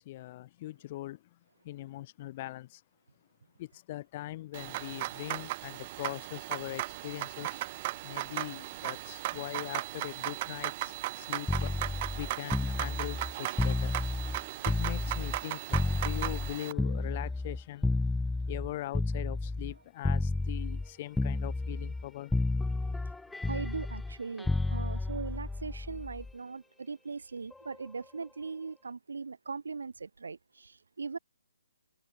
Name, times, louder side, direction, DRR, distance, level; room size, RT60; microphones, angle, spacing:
voice 1, 0.0-1.4 1.6-2.8 3.6-7.7 8.0-13.9 14.6-17.9 18.5-22.4, left 16 dB, 25° left, 3.2 m, -41 dB
sound 1, 4.5-16.7, right 17 dB, 25° right, 2.9 m, -37 dB
sound 2, 11.5-15.4 15.7-19.7 20.0-20.9 21.2-22.1 22.3-26.3 27.5-27.8, left 3 dB, 5° left, 0.8 m, -31 dB
voice 2, 23.5-31.2, right 4 dB, 85° right, 5.7 m, -40 dB
hypercardioid pair, 165°, 0 cm